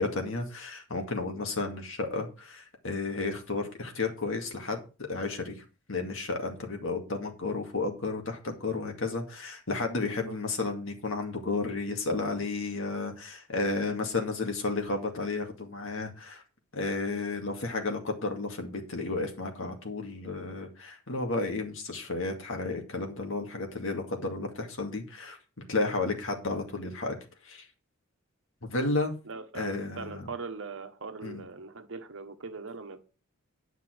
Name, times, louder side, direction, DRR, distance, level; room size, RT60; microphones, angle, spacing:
voice 1, 0.0-5.6 5.9-16.4 16.7-25.4 25.7-27.2 27.4-27.7 28.6-29.1 29.5-30.3 31.2-31.4, left 3 dB, 65° left, 2.2 m, -32 dB
voice 2, 10.1-10.4 29.2-33.0, right 4 dB, 60° right, 1.2 m, -41 dB
9.9 x 5.9 x 6.0 m
head